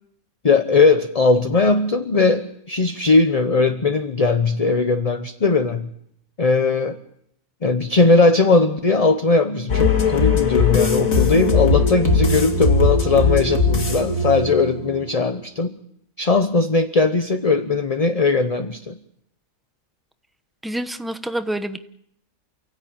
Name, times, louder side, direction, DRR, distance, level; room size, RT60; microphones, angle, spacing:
voice 1, 0.4-5.9 6.4-7.0 7.6-15.8 16.2-19.0, left 3 dB, 30° left, 8 dB, 0.9 m, -19 dB
sound 1, 9.7-15.4, left 3 dB, 70° left, 2.5 m, -19 dB
voice 2, 20.6-21.8, right 1 dB, ahead, 9 dB, 0.9 m, -27 dB
29.0 x 16.5 x 8.8 m, 0.74 s
omnidirectional pair, 1.5 m